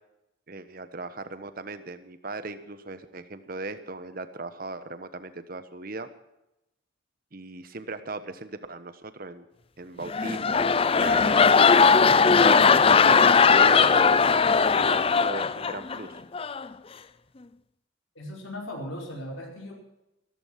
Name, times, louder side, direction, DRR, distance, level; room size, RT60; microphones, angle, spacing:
voice 1, 0.5-6.1 7.3-9.5 9.8-11.5 12.0-14.0 14.7-16.2, right 2 dB, 45° right, 11 dB, 1.2 m, -38 dB
sound 1, 10.0-16.0 16.3-16.7, left 5 dB, 25° left, 0.5 m, -19 dB
voice 2, 18.1-19.8, left 1 dB, 80° left, 0 dB, 4.9 m, -37 dB
15.0 x 14.0 x 5.9 m, 0.89 s
head